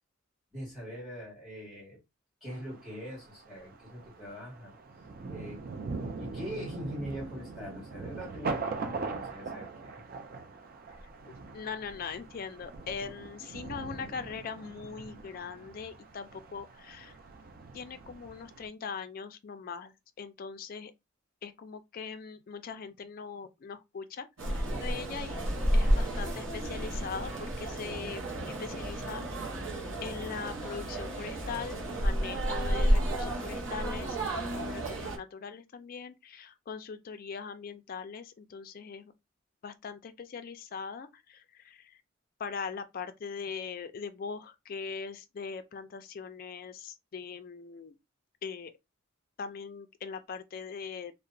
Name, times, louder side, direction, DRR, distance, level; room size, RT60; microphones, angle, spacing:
voice 1, 0.5-2.0 2.4-4.7 5.3-5.6 6.2-10.0, equal, ahead, 1.7 m, -42 dB
Thunder, 2.5-18.7, right 4 dB, 45° right, 0.3 m, -41 dB
voice 2, 11.5-17.1 17.7-20.9 21.4-25.4 25.7-29.2 30.0-39.1 39.6-42.0 42.4-47.9 48.4-48.7 49.4-51.1, left 5 dB, 45° left, 0.3 m, -41 dB
sound 1, 24.4-35.2, right 1 dB, 60° right, 0.7 m, -31 dB
2.8 x 2.0 x 2.5 m
head